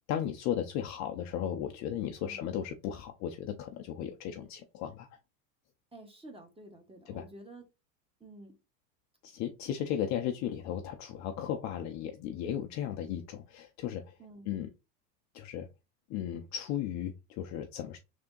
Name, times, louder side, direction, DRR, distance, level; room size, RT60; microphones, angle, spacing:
voice 1, 0.1-5.1 7.1-7.2 9.2-14.1 14.5-14.7 15.3-15.7 16.1-18.0, left 10 dB, 35° left, 0.5 m, -35 dB
voice 2, 5.9-7.6 8.2-8.5 14.2-14.5, right 1 dB, 10° right, 1.0 m, -50 dB
3.4 x 2.8 x 3.7 m
supercardioid pair, 110°, 49 cm